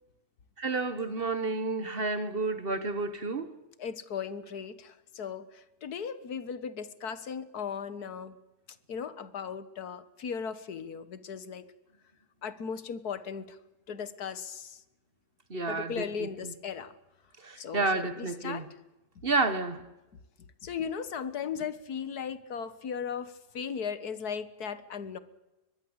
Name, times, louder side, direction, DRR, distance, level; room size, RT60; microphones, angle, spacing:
voice 1, 0.6-3.5 15.5-16.5 17.4-18.6 19.2-19.8, right 3 dB, 40° right, 1.5 m, -30 dB
voice 2, 3.8-8.4 8.9-11.6 12.4-13.6 13.9-14.8 15.7-16.9 17.6-18.7 20.6-25.2, left 7 dB, 85° left, 1.9 m, -37 dB
24.0 x 20.5 x 8.1 m
omnidirectional pair, 1.6 m